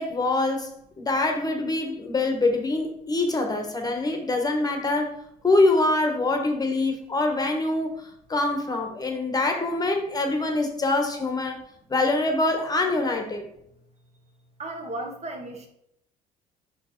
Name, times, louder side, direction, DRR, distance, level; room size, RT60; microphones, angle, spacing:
voice 1, 0.0-5.2 5.4-11.6 11.9-13.5, left 2 dB, 20° left, 4 dB, 1.0 m, -24 dB
voice 2, 14.6-15.7, right 2 dB, 40° right, 3 dB, 1.4 m, -35 dB
5.5 x 4.5 x 4.4 m, 0.76 s
cardioid pair, 110°, 17 cm